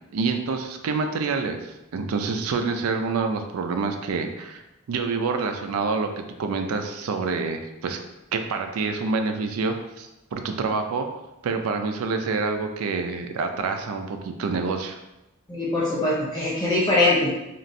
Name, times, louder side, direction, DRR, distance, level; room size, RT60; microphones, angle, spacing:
voice 1, 0.1-4.6 4.9-8.0 8.3-11.1 11.4-15.0, right 4 dB, 90° right, 6 dB, 0.4 m, -27 dB
voice 2, 15.5-17.4, left 2 dB, 20° left, -7 dB, 0.4 m, -22 dB
3.0 x 2.4 x 2.5 m, 0.95 s
head